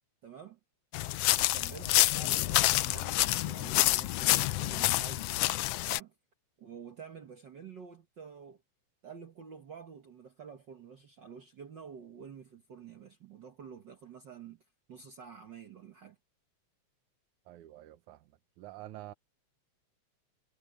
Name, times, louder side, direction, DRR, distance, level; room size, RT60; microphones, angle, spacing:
voice 1, 0.2-0.6 1.3-5.5 5.9-6.1 6.6-8.6 9.0-14.6 14.9-16.2, right 7 dB, 50° right, 1.5 m, -49 dB
sound 1, 0.9-6.0, left 16 dB, 85° left, 1.4 m, -27 dB
voice 2, 17.5-18.3 18.6-19.1, right 14 dB, 90° right, 2.4 m, -48 dB
omnidirectional pair, 3.3 m